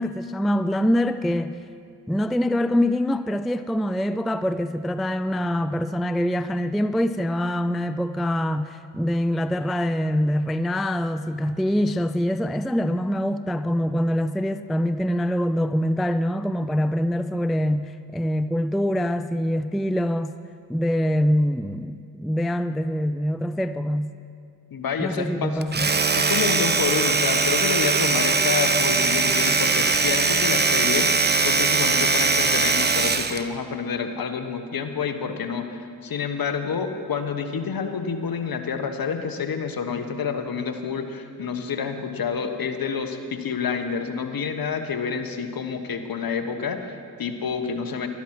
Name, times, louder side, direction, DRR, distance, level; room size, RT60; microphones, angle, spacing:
voice 1, 0.0-1.5 2.1-20.3 20.7-24.1 25.0-25.9, equal, ahead, 0.4 m, -24 dB
voice 2, 24.7-25.6 26.1-48.1, left 6 dB, 55° left, 1.4 m, -28 dB
Domestic sounds home sounds, 25.6-33.5, right 4 dB, 25° right, 0.9 m, -21 dB
12.5 x 12.0 x 6.1 m
hypercardioid pair, 45°, 43 cm